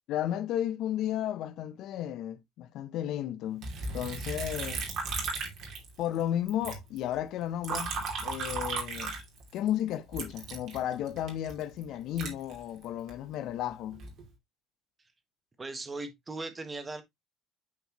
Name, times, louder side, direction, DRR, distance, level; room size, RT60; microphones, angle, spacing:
voice 1, 0.1-4.8 6.0-9.2 9.5-14.0, left 11 dB, 65° left, 0.7 m, -33 dB
Liquid, 3.6-6.2 6.5-9.7 10.1-13.1 13.7-14.2, right 4 dB, 60° right, 2.8 m, -36 dB
voice 2, 15.6-17.0, right 3 dB, 20° right, 1.4 m, -38 dB
8.5 x 4.4 x 3.0 m
cardioid pair, 105°, 0 cm